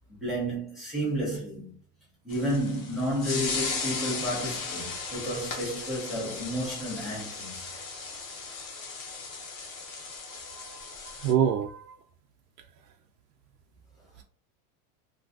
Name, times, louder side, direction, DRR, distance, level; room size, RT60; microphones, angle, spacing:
voice 1, 0.2-1.8 2.2-7.7, equal, ahead, 0.4 m, -31 dB
sound 1, 2.3-11.3, left 4 dB, 30° left, 0.7 m, -36 dB
voice 2, 10.5-10.8 11.2-12.0, right 9 dB, 80° right, 0.5 m, -27 dB
2.4 x 2.3 x 3.4 m
supercardioid pair, 160°, 47 cm